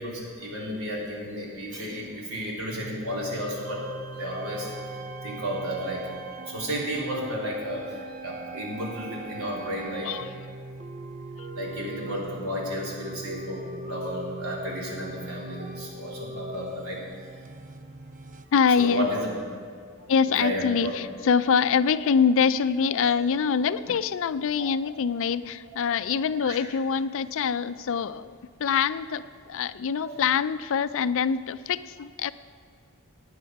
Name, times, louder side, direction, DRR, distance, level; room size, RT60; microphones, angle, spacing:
voice 1, 0.0-3.8 4.1-6.1 6.4-10.1 11.5-17.3 18.8-19.3 20.3-20.9 23.0-23.1 24.6-25.0 26.4-26.6 30.0-30.2, equal, 80° right, -4 dB, 3.7 m, -33 dB
sound 1, 2.7-18.5, right 2 dB, 35° right, 0.6 m, -40 dB
voice 2, 18.5-19.1 20.1-28.3 28.6-32.3, left 6 dB, 65° left, 15 dB, 0.4 m, -24 dB
17.0 x 9.6 x 4.7 m, 2.2 s
head